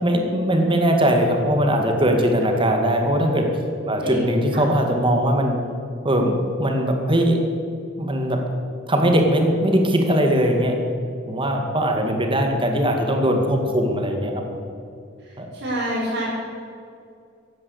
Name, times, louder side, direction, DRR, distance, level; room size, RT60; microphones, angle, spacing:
voice 1, 0.0-3.5 3.8-5.6 6.0-7.4 8.0-8.4 8.9-10.8 11.3-14.6 15.4-15.5, equal, 25° right, 3 dB, 2.1 m, -20 dB
voice 2, 15.6-16.2, right 1 dB, 70° right, -9 dB, 5.0 m, -26 dB
15.5 x 11.0 x 8.0 m, 2.4 s
head